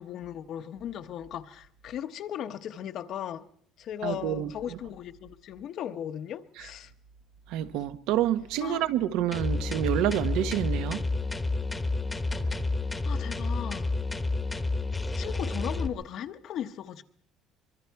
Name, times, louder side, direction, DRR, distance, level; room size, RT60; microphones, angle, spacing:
voice 1, 0.0-3.5 3.8-6.9 8.6-8.9 13.0-14.0 15.1-17.0, left 10 dB, 45° left, 0.9 m, -37 dB
voice 2, 4.0-4.5 7.5-11.0, right 12 dB, 70° right, 1.1 m, -28 dB
sound 1, 9.3-15.9, left 3 dB, 10° left, 1.1 m, -30 dB
24.5 x 23.0 x 4.6 m
cardioid pair, 175°, 0 cm